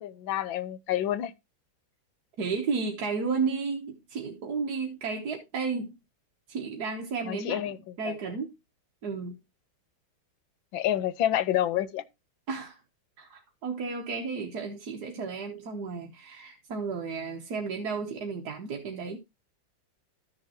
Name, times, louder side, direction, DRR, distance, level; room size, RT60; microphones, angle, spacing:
voice 1, 0.0-1.3 7.2-8.2 10.7-12.0 15.2-15.3, left 12 dB, 75° left, 1.5 m, -29 dB
voice 2, 2.4-6.0 6.5-8.5 9.0-9.4 12.5-12.8 13.2-19.2, right 5 dB, 55° right, 1.5 m, -33 dB
13.5 x 6.8 x 2.8 m
omnidirectional pair, 2.2 m